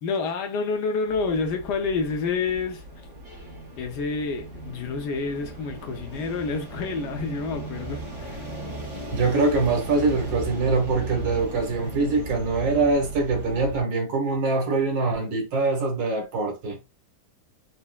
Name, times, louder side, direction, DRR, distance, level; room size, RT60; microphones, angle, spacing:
voice 1, 0.0-2.8 3.8-8.4, left 4 dB, 75° left, 1.2 m, -28 dB
sound 1, 1.1-13.8, right 1 dB, 45° right, 1.4 m, -37 dB
voice 2, 9.1-16.8, right 3 dB, 85° right, 1.8 m, -23 dB
4.0 x 2.0 x 2.2 m
omnidirectional pair, 2.0 m